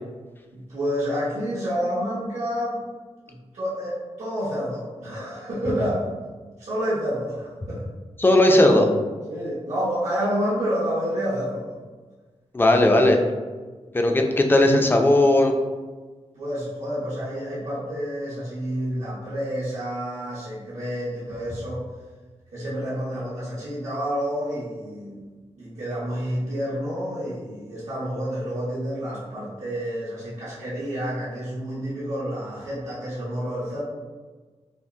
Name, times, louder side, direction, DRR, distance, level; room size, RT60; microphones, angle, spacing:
voice 1, 0.5-2.8 3.5-6.1 6.6-7.8 9.3-11.8 16.3-21.8 22.5-33.8, equal, 85° right, -11 dB, 1.2 m, -29 dB
voice 2, 8.2-8.9 12.5-13.2 13.9-15.5, left 1 dB, 20° left, 3 dB, 0.3 m, -17 dB
5.7 x 2.0 x 2.6 m, 1.4 s
wide cardioid pair, 170°, 12 cm